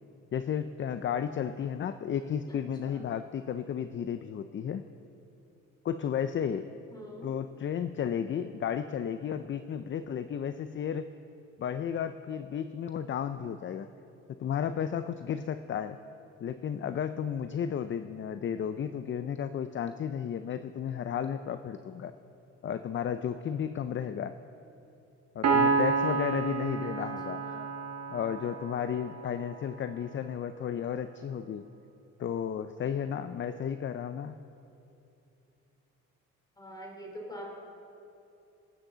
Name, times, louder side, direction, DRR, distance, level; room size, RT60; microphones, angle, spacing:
voice 1, 0.3-4.8 5.8-6.7 7.2-11.1 11.6-13.9 14.4-16.0 16.4-22.1 22.6-24.4 25.4-27.4 28.1-31.6 32.2-34.4, left 8 dB, 40° left, 11 dB, 0.5 m, -33 dB
voice 2, 2.5-3.0 6.9-7.3 26.8-26.9 27.3-27.7 36.6-37.5, equal, 15° left, -1 dB, 3.6 m, -45 dB
Piano, 25.4-29.0, right 4 dB, 60° right, 1.5 m, -29 dB
23.5 x 8.8 x 3.9 m, 2.7 s
cardioid pair, 90°, 30 cm